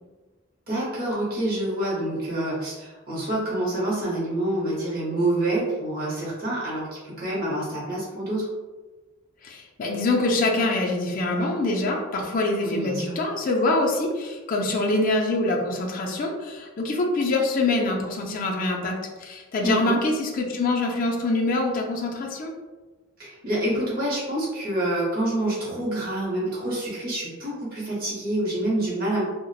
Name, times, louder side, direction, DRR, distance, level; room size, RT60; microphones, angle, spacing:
voice 1, 0.7-8.5 12.6-13.2 19.6-20.0 23.2-29.3, right 1 dB, 45° right, -6 dB, 0.7 m, -27 dB
voice 2, 9.4-22.5, left 2 dB, 40° left, -1 dB, 0.4 m, -25 dB
2.8 x 2.0 x 2.2 m, 1.3 s
head